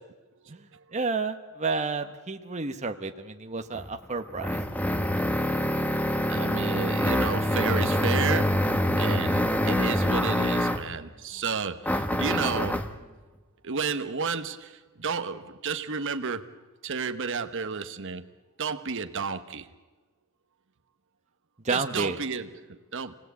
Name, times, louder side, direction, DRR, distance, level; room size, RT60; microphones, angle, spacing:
voice 1, 0.5-4.6 21.6-22.2, right 4 dB, 30° right, 6 dB, 1.0 m, -31 dB
sound 1, 3.7-10.9 11.8-13.0, left 1 dB, 5° left, 1.1 m, -25 dB
voice 2, 6.1-12.9 13.6-18.2 18.6-19.7 21.7-23.2, right 5 dB, 60° right, 8 dB, 1.1 m, -32 dB
27.5 x 18.5 x 8.2 m, 1.3 s
head